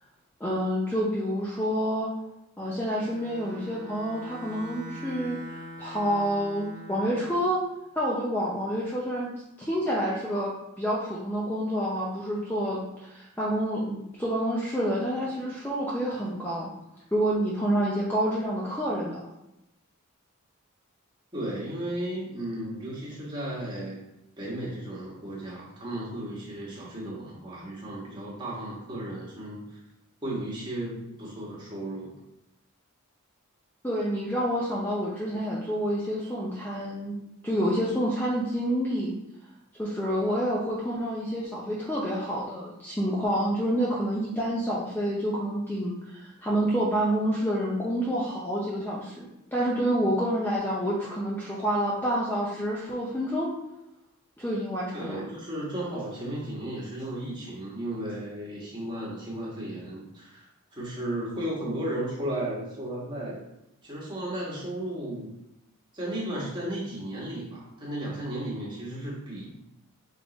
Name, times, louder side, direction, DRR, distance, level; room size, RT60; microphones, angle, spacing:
voice 1, 0.4-2.1 2.6-7.6 8.0-9.3 9.6-16.7 17.1-19.2 33.8-37.2 37.4-39.1 39.8-49.2 49.5-53.5 54.4-55.2, equal, 10° left, -6 dB, 0.6 m, -28 dB
Bowed string instrument, 3.0-7.5, right 1 dB, 45° right, 0.9 m, -43 dB
voice 2, 21.3-24.0 24.4-29.8 30.2-32.1 54.9-63.4 63.8-65.3 65.9-69.6, right 1 dB, 20° right, -6 dB, 1.4 m, -34 dB
3.7 x 3.6 x 3.9 m, 0.89 s
head